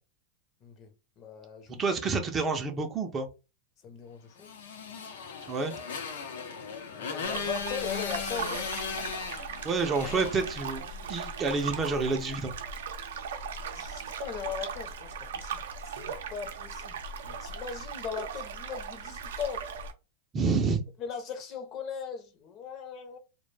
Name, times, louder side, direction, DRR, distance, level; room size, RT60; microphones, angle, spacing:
voice 1, 1.2-1.8 3.8-4.5 7.0-9.3 13.7-15.6 16.0-19.7 21.0-23.2, left 7 dB, 35° left, 0.6 m, -39 dB
voice 2, 1.8-3.3 5.5-5.7 9.6-12.5 20.3-20.8, right 4 dB, 20° right, 0.4 m, -28 dB
Motorcycle, 4.4-11.1, left 6 dB, 80° left, 0.6 m, -37 dB
sound 1, 7.2-19.9, right 6 dB, 85° right, 0.4 m, -38 dB
2.1 x 2.1 x 3.1 m
supercardioid pair, 140°, 0 cm